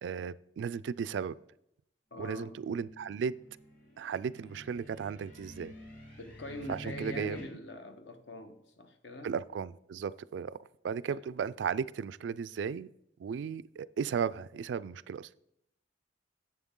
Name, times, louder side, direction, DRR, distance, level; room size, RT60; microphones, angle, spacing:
voice 1, 0.0-1.4 2.2-3.3 4.0-5.7 6.7-7.4 9.2-12.9 13.2-15.3, right 6 dB, 70° right, 0.3 m, -35 dB
voice 2, 2.1-2.6 6.2-9.3 11.0-11.2, left 2 dB, 70° left, 1.1 m, -44 dB
sound 1, 2.5-7.4, right 1 dB, 45° left, 3.0 m, -49 dB
11.0 x 7.7 x 3.7 m
head